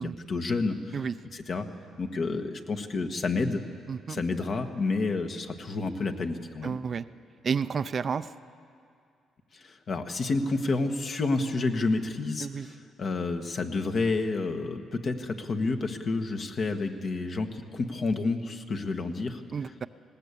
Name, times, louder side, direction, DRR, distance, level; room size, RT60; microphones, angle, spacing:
voice 1, 0.0-1.0 1.3-1.7 2.0-3.6 4.1-6.8 9.5-19.4, left 3 dB, 50° left, 6 dB, 1.5 m, -30 dB
voice 2, 3.9-4.2 6.6-7.1 7.4-8.3 12.4-12.7 19.5-19.9, right 6 dB, 45° right, 13 dB, 0.5 m, -31 dB
19.5 x 17.5 x 8.4 m, 2.4 s
cardioid pair, 90°, 0 cm